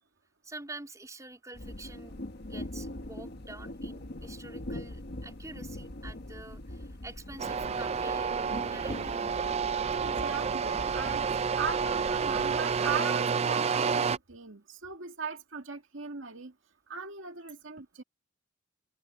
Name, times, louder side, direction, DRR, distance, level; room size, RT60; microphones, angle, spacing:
voice 1, 0.4-2.2 2.5-9.2, right 2 dB, 15° right, 3.5 m, -47 dB
sound 1, 1.5-13.0, left 1 dB, 55° left, 1.5 m, -42 dB
sound 2, 7.4-14.2, right 6 dB, 35° right, 0.4 m, -29 dB
voice 2, 10.0-16.5 16.9-18.0, right 5 dB, 80° right, 2.1 m, -38 dB
head